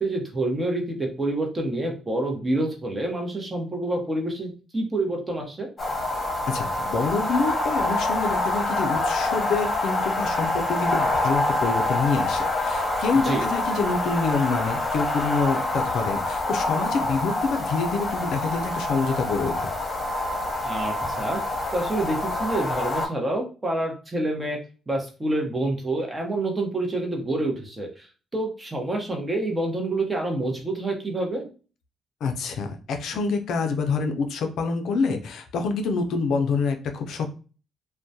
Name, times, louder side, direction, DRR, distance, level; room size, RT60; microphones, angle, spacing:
voice 1, 0.0-5.7 13.2-13.4 20.6-21.4 21.7-24.6 24.9-28.1 28.3-31.5, right 2 dB, 20° right, 2 dB, 0.7 m, -27 dB
sound 1, 5.8-23.1, left 2 dB, 30° left, 0.9 m, -26 dB
voice 2, 6.2-19.7 32.2-37.3, left 4 dB, 75° left, 6 dB, 0.4 m, -27 dB
2.2 x 2.1 x 2.6 m, 0.35 s
cardioid pair, 90°, 0 cm